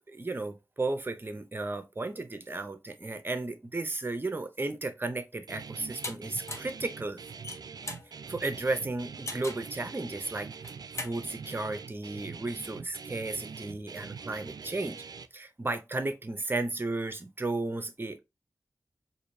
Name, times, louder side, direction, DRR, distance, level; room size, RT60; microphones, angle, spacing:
voice 1, 0.1-7.2 8.3-10.5 11.0-15.0 15.3-18.2, right 2 dB, 30° right, 0.7 m, -34 dB
Guitar, 5.5-15.3, right 5 dB, 70° right, 0.4 m, -44 dB
sound 1, 6.0-6.1 6.5-6.8 7.3-8.1 9.3-9.7 10.5-11.2, left 2 dB, 45° left, 0.9 m, -38 dB
4.8 x 2.6 x 2.6 m
wide cardioid pair, 100°, 7 cm